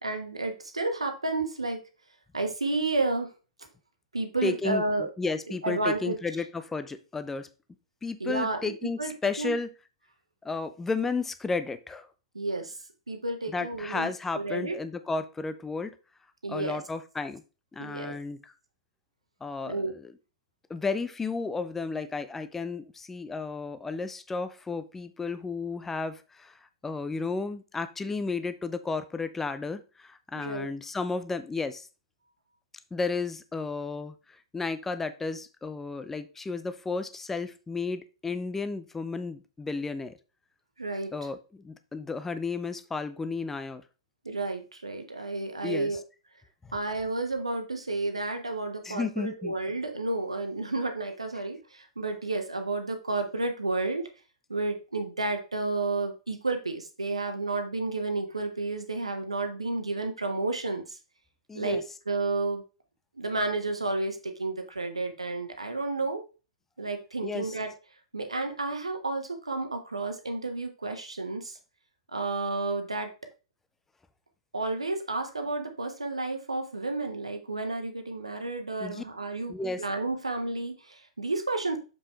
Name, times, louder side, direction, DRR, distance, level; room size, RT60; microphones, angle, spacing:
voice 1, 0.0-1.8 2.3-3.3 4.1-5.1 5.6-6.2 8.2-9.5 12.3-12.7 13.1-14.1 14.3-14.8 16.4-16.8 17.8-18.1 19.6-19.9 30.3-30.7 40.8-41.1 44.2-46.0 46.7-54.1 54.5-61.0 61.5-62.6 63.2-66.2 66.8-67.7 68.1-71.6 72.1-73.1 74.5-81.8, right 2 dB, 80° right, 5 dB, 1.3 m, -31 dB
voice 2, 4.4-7.5 8.0-9.7 10.4-12.1 13.5-15.9 16.5-17.4 17.7-18.5 19.4-20.1 20.7-31.9 32.9-40.2 41.1-43.8 45.6-46.0 48.8-49.5 61.5-61.8 67.2-67.5 78.8-79.0 79.5-79.8, left 4 dB, 10° left, 11 dB, 0.6 m, -33 dB
7.0 x 5.5 x 3.3 m, 0.32 s
figure-of-eight pair, 105°, 3 cm